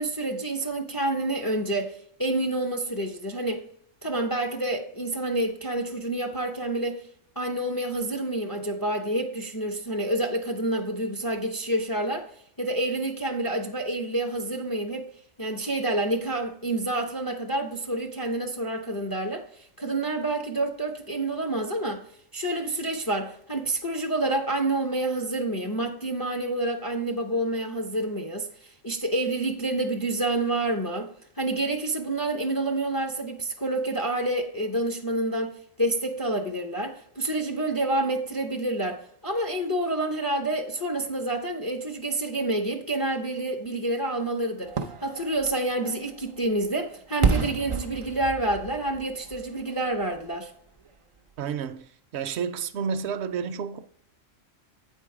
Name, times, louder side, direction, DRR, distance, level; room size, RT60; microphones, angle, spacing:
voice 1, 0.0-3.6 4.0-7.0 7.4-12.3 12.6-15.1 15.4-22.0 22.3-31.1 31.4-44.7 45.0-50.5, right 2 dB, 25° left, 0.5 m, -28 dB
Fireworks, 44.6-50.4 50.8-50.9, right 5 dB, 45° right, 0.4 m, -31 dB
voice 2, 51.4-53.8, right 7 dB, 65° right, 0.8 m, -31 dB
8.5 x 4.6 x 4.7 m
omnidirectional pair, 1.3 m